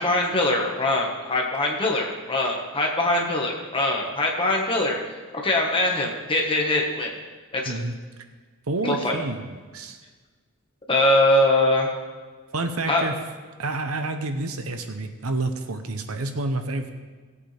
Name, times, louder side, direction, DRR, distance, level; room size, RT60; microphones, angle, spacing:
voice 1, 0.0-5.0 5.3-7.1 7.5-7.8 8.8-9.2 10.9-11.9 12.9-13.0, left 1 dB, 25° left, 0 dB, 1.6 m, -22 dB
voice 2, 8.7-10.0 12.5-13.2 13.6-16.9, right 2 dB, 75° right, 7 dB, 1.0 m, -29 dB
17.5 x 8.4 x 3.5 m, 1.4 s
head